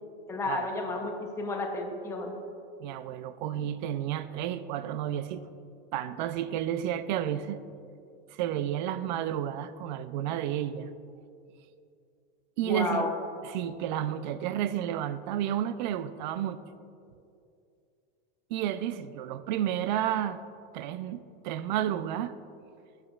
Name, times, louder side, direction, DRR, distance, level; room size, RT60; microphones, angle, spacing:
voice 1, 0.3-2.4 12.7-13.1, left 2 dB, 10° left, 2 dB, 0.6 m, -32 dB
voice 2, 2.8-5.4 5.9-7.6 8.3-10.9 12.6-13.1 13.4-16.6 18.5-20.4 20.7-22.3, right 11 dB, 50° right, 13 dB, 0.4 m, -31 dB
16.0 x 7.9 x 2.3 m, 2.5 s
supercardioid pair, 165°, 29 cm